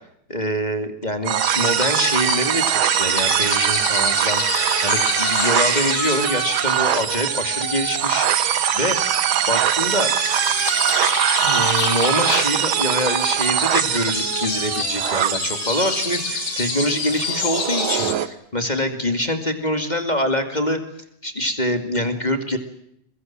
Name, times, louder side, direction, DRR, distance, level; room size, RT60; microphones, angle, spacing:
voice 1, 0.3-9.0 9.5-10.1 11.4-20.8 21.2-22.6, left 1 dB, 15° left, 8 dB, 2.1 m, -25 dB
sound 1, 1.2-18.3, right 10 dB, 60° right, 1.3 m, -22 dB
sound 2, 1.3-18.1, left 8 dB, 70° left, 3.2 m, -29 dB
23.5 x 23.0 x 7.5 m, 0.73 s
omnidirectional pair, 3.6 m